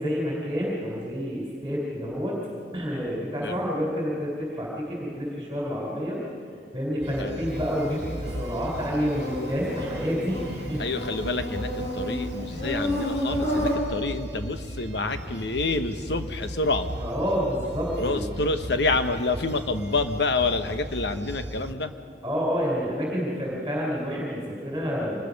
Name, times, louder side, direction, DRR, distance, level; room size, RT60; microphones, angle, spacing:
voice 1, 0.0-2.4 2.7-6.2 6.7-10.8 12.5-12.7 17.0-18.2 22.2-25.2, equal, 15° right, -5 dB, 3.8 m, -29 dB
sound 1, 7.0-21.7, equal, 70° right, 1.4 m, -37 dB
Insect, 7.5-13.8, equal, 40° left, 6.1 m, -32 dB
voice 2, 10.8-16.9 18.0-21.9, left 3 dB, 70° left, 8 dB, 1.1 m, -28 dB
24.5 x 20.0 x 5.3 m, 2.4 s
head